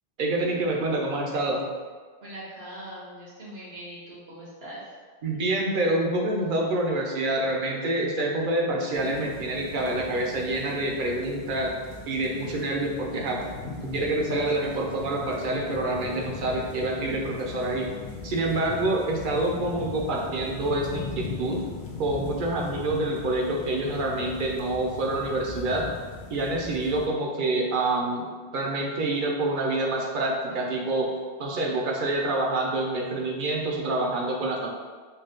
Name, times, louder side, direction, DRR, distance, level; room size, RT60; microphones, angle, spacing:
voice 1, 0.2-1.7 5.2-11.7 12.1-17.9 18.2-21.6 22.0-25.9 26.3-31.1 31.4-34.7, right 2 dB, 60° right, -1 dB, 0.8 m, -27 dB
voice 2, 2.2-4.8, right 1 dB, 80° right, -6 dB, 1.4 m, -41 dB
sound 1, 8.9-27.1, left 4 dB, 85° left, 0.9 m, -39 dB
4.0 x 2.2 x 3.8 m, 1.5 s
omnidirectional pair, 1.0 m